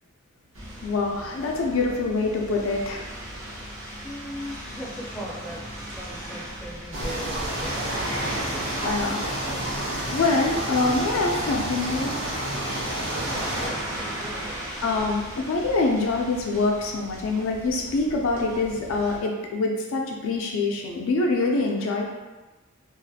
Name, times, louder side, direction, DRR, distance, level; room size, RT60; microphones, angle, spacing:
sound 1, 0.5-19.2, right 1 dB, 80° right, 0.7 m, -38 dB
voice 1, 0.8-3.1 8.8-9.5 10.1-12.1 14.8-22.1, left 3 dB, 75° left, 0 dB, 0.3 m, -25 dB
voice 2, 4.0-7.8 13.3-14.7, equal, 5° left, -6 dB, 0.4 m, -38 dB
sound 2, 6.9-13.7, right 1 dB, 60° right, 1.2 m, -29 dB
2.4 x 2.3 x 2.6 m, 1.2 s
head